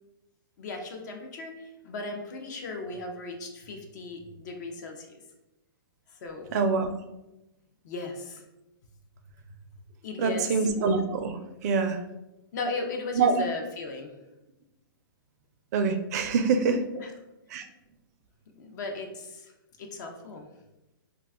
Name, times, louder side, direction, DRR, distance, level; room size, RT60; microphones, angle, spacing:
voice 1, 0.6-5.1 6.2-6.5 7.8-8.4 10.0-10.7 12.5-14.1 16.9-17.1 18.6-19.5 19.8-20.5, left 3 dB, 50° left, 3 dB, 0.5 m, -36 dB
voice 2, 6.5-6.9 10.2-12.0 13.2-13.4 15.7-16.8 17.5-17.6, right 5 dB, 45° right, 7 dB, 0.4 m, -25 dB
2.4 x 2.2 x 3.4 m, 0.95 s
hypercardioid pair, 145°, 12 cm